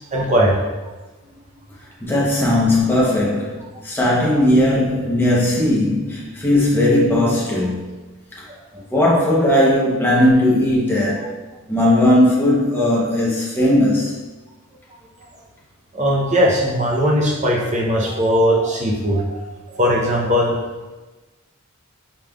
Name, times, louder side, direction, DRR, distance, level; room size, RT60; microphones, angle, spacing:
voice 1, 0.1-0.6 15.9-19.4 19.7-20.6, equal, 30° right, -1 dB, 0.6 m, -18 dB
voice 2, 2.0-3.6 3.8-7.8 8.9-11.3 11.7-14.1, left 1 dB, 10° left, -6 dB, 0.8 m, -17 dB
5.1 x 3.2 x 2.3 m, 1.2 s
head